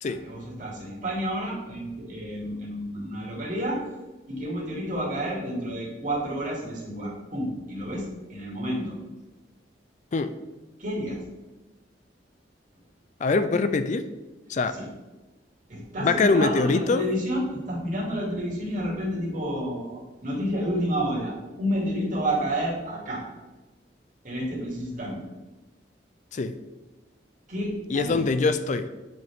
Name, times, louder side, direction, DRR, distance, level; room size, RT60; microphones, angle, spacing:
voice 1, 0.0-3.8 4.3-8.9 10.8-11.2 14.7-14.8 15.7-23.2 24.2-25.3 27.5-28.3, equal, 45° right, -4 dB, 2.6 m, -30 dB
voice 2, 13.2-14.1 14.5-14.8 16.0-17.1 26.3-26.6 27.9-28.9, left 3 dB, 40° left, 10 dB, 0.4 m, -23 dB
8.3 x 5.2 x 3.6 m, 1.1 s
head